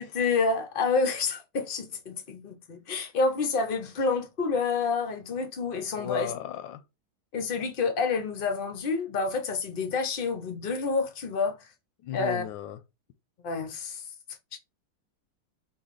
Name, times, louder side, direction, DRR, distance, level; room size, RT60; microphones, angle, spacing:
voice 1, 0.0-6.3 7.3-11.7 12.1-12.4 13.4-14.0 14.5-14.6, left 4 dB, 55° left, 0.6 m, -28 dB
voice 2, 5.9-6.8 12.0-12.8, left 12 dB, 85° left, 1.3 m, -35 dB
4.7 x 3.1 x 3.1 m
omnidirectional pair, 2.0 m